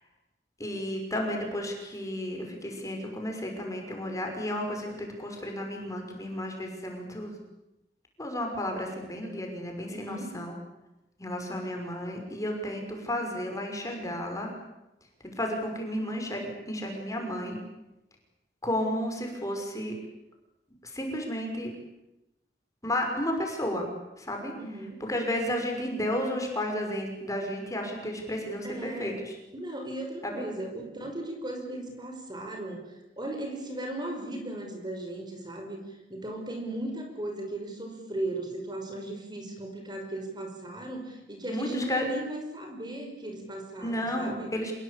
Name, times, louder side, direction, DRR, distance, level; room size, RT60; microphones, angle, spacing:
voice 1, 0.6-7.3 8.2-10.5 11.2-14.5 15.4-17.6 18.6-19.9 20.8-21.7 22.8-23.9 24.2-24.5 25.0-29.3 30.2-30.4 41.5-42.1 43.8-44.7, left 1 dB, 20° left, 2 dB, 5.9 m, -32 dB
voice 2, 9.9-10.3 24.6-25.0 28.6-29.2 29.5-32.9 33.2-44.5, right 1 dB, 25° right, 3 dB, 5.4 m, -37 dB
27.5 x 21.0 x 8.6 m, 0.94 s
head